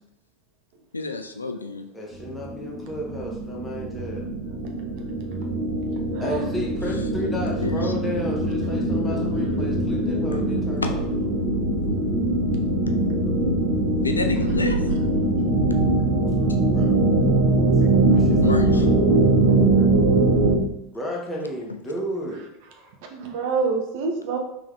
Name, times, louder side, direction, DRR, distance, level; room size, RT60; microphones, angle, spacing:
voice 1, 0.9-1.9 7.6-7.9 10.3-10.4 10.8-10.9 14.0-14.8 18.4-18.9, left 3 dB, 85° left, 7 dB, 0.3 m, -29 dB
voice 2, 1.9-4.2 6.2-11.0 16.7-16.9 17.6-18.9 20.9-22.4, equal, 10° left, -3 dB, 1.3 m, -33 dB
sound 1, 2.2-20.5, right 2 dB, 40° right, 1.1 m, -22 dB
voice 3, 5.9-6.7 22.8-24.4, right 4 dB, 60° right, 3 dB, 0.8 m, -28 dB
3.5 x 3.4 x 3.3 m, 0.81 s
figure-of-eight pair, 80°, 0 cm